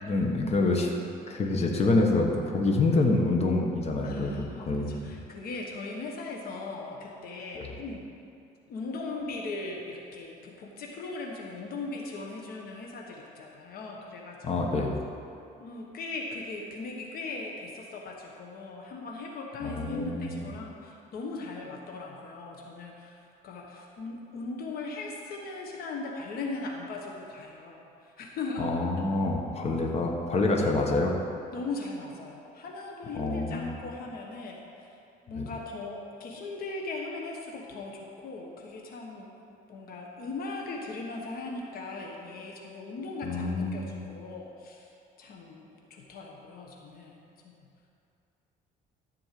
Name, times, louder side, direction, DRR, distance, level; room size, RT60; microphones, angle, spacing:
voice 1, 0.0-0.9 1.3-5.0 7.5-7.7 14.4-15.0 19.6-20.4 28.6-31.2 33.1-33.8 35.3-35.5 43.2-44.0, left 2 dB, 40° left, 0 dB, 1.4 m, -27 dB
voice 2, 4.0-8.0 8.7-14.7 15.6-23.2 23.4-28.6 31.5-34.9 35.2-44.9 45.2-47.2 47.4-47.6, left 3 dB, 60° left, 0 dB, 1.3 m, -39 dB
13.5 x 4.5 x 7.6 m, 2.6 s
cardioid pair, 110°, 17 cm